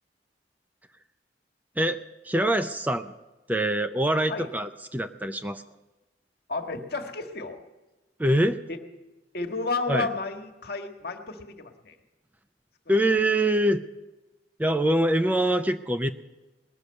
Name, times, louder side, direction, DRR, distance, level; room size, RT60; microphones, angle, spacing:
voice 1, 2.2-3.1 3.5-5.6 8.2-8.6 9.9-10.1 12.9-13.8 14.6-16.1, right 1 dB, 10° right, 9 dB, 0.4 m, -24 dB
voice 2, 6.5-7.6 8.7-8.8 9.3-12.0, left 3 dB, 60° left, 5 dB, 1.5 m, -32 dB
19.5 x 6.6 x 9.5 m, 1.1 s
head